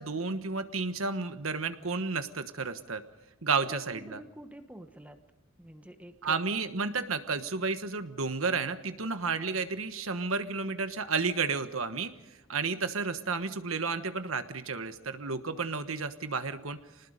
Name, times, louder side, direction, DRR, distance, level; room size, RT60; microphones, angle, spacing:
voice 1, 0.0-3.0 3.4-4.2 6.2-12.1 12.5-16.8, right 4 dB, 80° right, 9 dB, 1.3 m, -32 dB
voice 2, 3.7-5.2 5.6-6.4, right 1 dB, 5° right, 7 dB, 1.1 m, -47 dB
26.0 x 19.5 x 5.2 m, 1.0 s
head